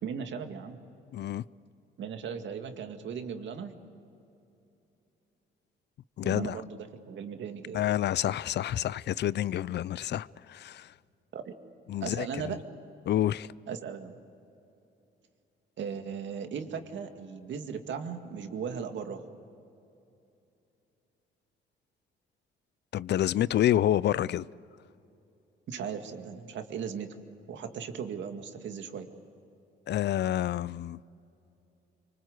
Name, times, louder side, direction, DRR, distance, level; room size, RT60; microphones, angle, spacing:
voice 1, 0.0-0.8 2.0-3.7 6.2-7.8 11.3-11.5 12.0-12.6 13.7-14.2 15.8-19.2 25.7-27.2 27.5-29.1, right 7 dB, 70° right, 2.1 m, -37 dB
voice 2, 1.1-1.4 6.2-6.6 7.7-10.9 11.9-12.6 13.1-13.5 22.9-24.4 29.9-31.0, left 12 dB, 60° left, 0.5 m, -28 dB
25.0 x 24.5 x 8.0 m
cardioid pair, 90°, 20 cm